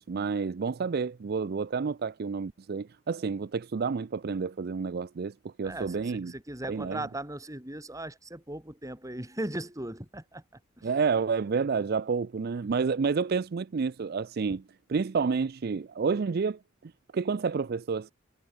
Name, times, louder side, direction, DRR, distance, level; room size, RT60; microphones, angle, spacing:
voice 1, 0.0-6.3 6.7-7.0 10.8-14.6 14.9-18.1, right 5 dB, 50° right, 0.4 m, -29 dB
voice 2, 5.6-10.9 14.5-14.6, right 1 dB, 15° right, 2.5 m, -38 dB
head